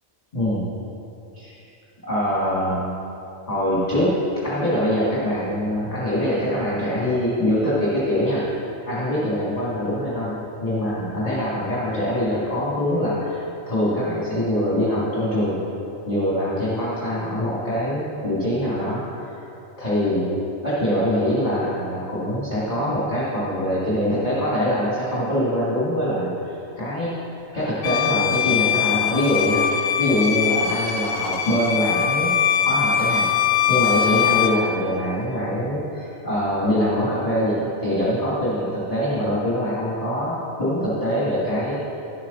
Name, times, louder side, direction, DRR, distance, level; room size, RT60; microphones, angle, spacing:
voice 1, 0.3-0.7 1.3-1.6 2.0-2.9 3.5-8.6 8.9-15.6 16.1-19.4 19.8-27.1 27.5-32.4 32.6-41.9, equal, 35° left, -8 dB, 1.7 m, -24 dB
Bowed string instrument, 27.8-34.6, left 8 dB, 65° left, 0.8 m, -22 dB
11.0 x 7.4 x 3.9 m, 2.9 s
omnidirectional pair, 1.2 m